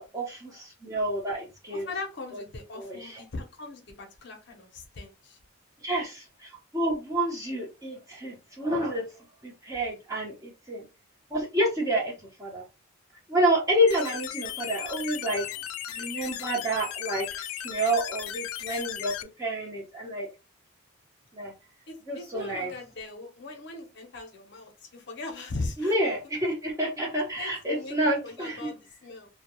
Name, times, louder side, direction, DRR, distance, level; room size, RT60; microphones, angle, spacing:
voice 1, 0.0-1.9 2.3-2.4 2.8-3.2 5.8-9.1 9.4-10.9 11.3-12.1 12.4-12.6 13.3-15.5 15.9-19.1 19.4-20.3 21.3-21.5 22.1-22.7 25.8-28.7, right 1 dB, 15° right, 0.7 m, -29 dB
voice 2, 1.7-5.4 21.9-25.9 27.4-29.3, left 3 dB, 55° left, 0.7 m, -39 dB
sound 1, 13.9-19.2, left 11 dB, 85° left, 0.3 m, -36 dB
2.2 x 2.1 x 2.9 m
head